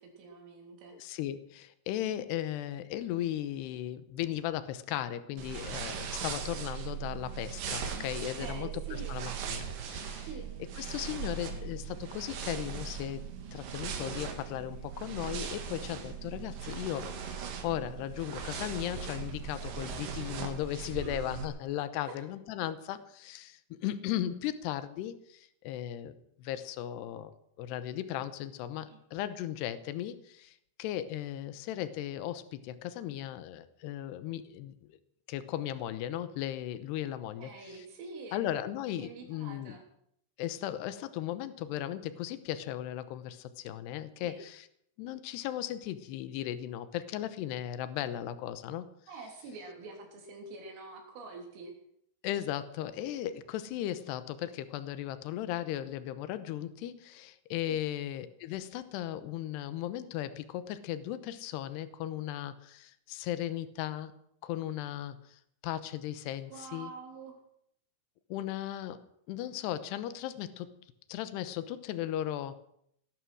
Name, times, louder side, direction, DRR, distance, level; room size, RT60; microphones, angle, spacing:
voice 1, 0.0-1.0 8.1-9.2 10.3-10.5 21.0-21.1 22.0-22.2 28.9-29.0 37.4-38.4 39.0-39.8 44.2-44.4 49.1-51.7 57.7-57.8 66.5-67.3, right 3 dB, 80° right, 2 dB, 6.0 m, -46 dB
voice 2, 0.9-10.3 10.8-27.3 27.6-34.8 35.3-37.5 38.3-39.7 40.4-44.7 45.0-48.9 52.2-64.1 64.4-66.9 68.3-69.0 69.3-70.7 71.1-72.6, left 12 dB, 75° left, 13 dB, 2.6 m, -37 dB
sound 1, 5.4-21.5, right 7 dB, 55° right, 2.8 m, -39 dB
18.0 x 13.0 x 6.3 m, 0.70 s
omnidirectional pair, 5.8 m